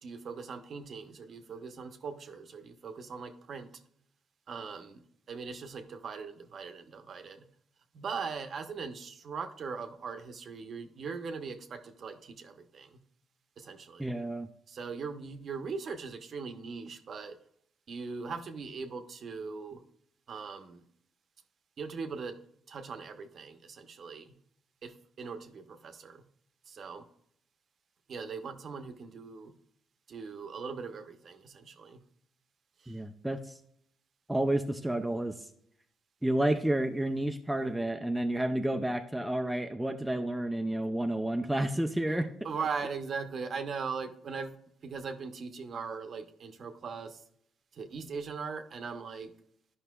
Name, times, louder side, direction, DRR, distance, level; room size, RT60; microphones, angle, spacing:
voice 1, 0.0-3.7 4.5-5.0 5.3-7.5 7.9-13.0 13.6-14.2 14.7-17.4 17.9-19.8 20.3-20.8 21.8-22.4 22.7-24.3 24.8-26.2 26.7-27.0 28.1-29.5 30.1-32.0 32.8-33.0 42.4-44.6 44.8-47.2 47.7-49.3, right 5 dB, 50° right, 8 dB, 0.7 m, -40 dB
voice 2, 14.0-14.5 32.9-33.6 34.3-35.4 36.2-42.3, right 1 dB, 5° right, 5 dB, 0.4 m, -30 dB
11.0 x 5.4 x 2.3 m, 0.69 s
cardioid pair, 105°, 0 cm